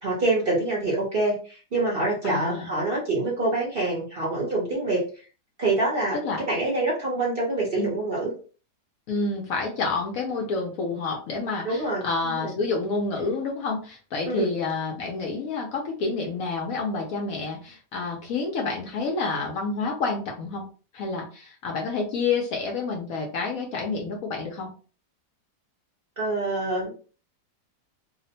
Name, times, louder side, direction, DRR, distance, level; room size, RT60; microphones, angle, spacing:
voice 1, 0.0-5.0 5.6-8.3 11.6-12.5 14.3-14.5 26.2-26.9, right 2 dB, 45° right, -4 dB, 0.8 m, -26 dB
voice 2, 2.2-2.7 6.2-6.4 7.8-7.9 9.1-20.6 20.9-24.7, left 3 dB, 70° left, 0 dB, 0.9 m, -29 dB
2.8 x 2.0 x 2.7 m, 0.38 s
omnidirectional pair, 1.8 m